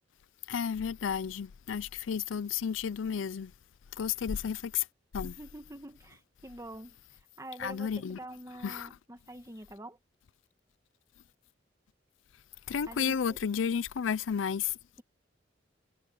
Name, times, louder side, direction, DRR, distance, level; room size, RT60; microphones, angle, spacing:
voice 1, 0.5-3.5 4.0-4.9 5.1-5.3 7.6-8.2 8.6-8.9 12.7-14.8, left 7 dB, 85° left, 0.5 m, -32 dB
voice 2, 5.2-7.0 7.4-10.0 12.9-13.4, right 1 dB, 15° right, 1.7 m, -46 dB
head